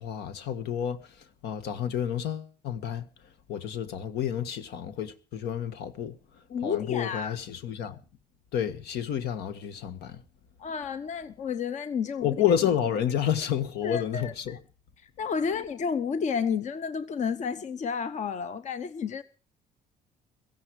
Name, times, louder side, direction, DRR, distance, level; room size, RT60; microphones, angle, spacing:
voice 1, 0.0-1.1 1.4-3.1 3.5-6.2 6.6-8.0 8.5-10.2 12.2-14.6, left 9 dB, 75° left, 1.7 m, -30 dB
voice 2, 6.5-7.4 10.6-12.4 13.8-14.6 15.2-19.2, left 6 dB, 45° left, 1.0 m, -31 dB
17.0 x 14.5 x 4.9 m
cardioid pair, 110°, 17 cm